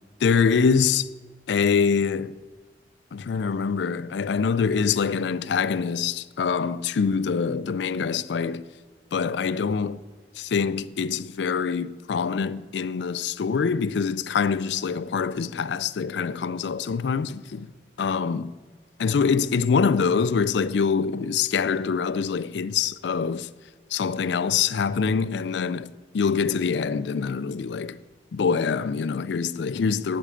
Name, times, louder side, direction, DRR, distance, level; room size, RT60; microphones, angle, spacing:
voice 1, 0.2-1.1 1.5-2.4 3.1-8.7 9.1-10.0 10.4-17.7 18.0-18.5 19.0-23.5 23.9-28.0 28.3-30.2, left 5 dB, 65° left, 0.4 m, -24 dB
8.6 x 8.2 x 8.5 m
head